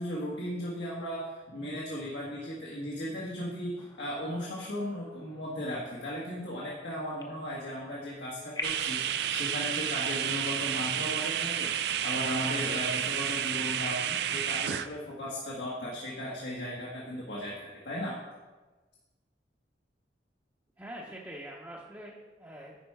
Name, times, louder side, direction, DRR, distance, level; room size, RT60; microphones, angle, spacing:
voice 1, 0.0-18.2, equal, 85° left, -5 dB, 1.6 m, -36 dB
sound 1, 3.8-9.1, left 2 dB, 20° left, 0.7 m, -46 dB
sound 2, 8.6-14.9, right 9 dB, 65° right, 0.4 m, -31 dB
voice 2, 20.8-22.8, right 1 dB, 15° right, -4 dB, 0.7 m, -44 dB
10.0 x 4.9 x 4.7 m, 1.2 s
head